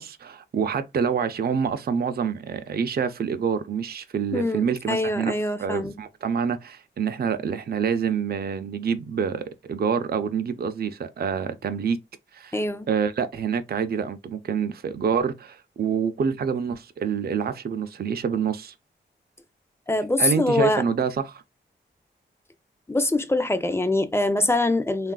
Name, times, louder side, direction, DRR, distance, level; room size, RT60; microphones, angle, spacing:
voice 1, 0.0-5.3 5.6-12.0 12.3-12.6 12.9-18.7 20.2-21.4, right 6 dB, 50° right, 0.5 m, -27 dB
voice 2, 4.3-6.0 12.5-12.9 19.9-20.8 22.9-25.1, left 2 dB, 10° left, 0.5 m, -24 dB
3.3 x 2.4 x 2.3 m
cardioid pair, 40°, 20 cm